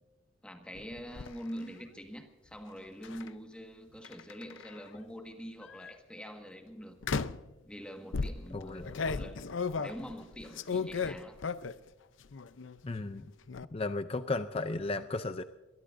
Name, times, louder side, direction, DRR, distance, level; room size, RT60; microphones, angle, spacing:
voice 1, 0.4-7.0 7.6-9.4 9.8-11.4, equal, 5° left, 4 dB, 1.6 m, -45 dB
sound 1, 0.7-1.3 3.0-3.3 4.0-4.9 5.6-5.9 7.0-7.5 8.1-11.9 12.2-12.8 13.1-13.7, left 4 dB, 75° left, 0.6 m, -35 dB
voice 2, 8.5-8.9 12.8-13.3 13.7-15.4, left 3 dB, 30° left, 9 dB, 0.5 m, -34 dB
23.0 x 22.0 x 2.6 m, 1.2 s
head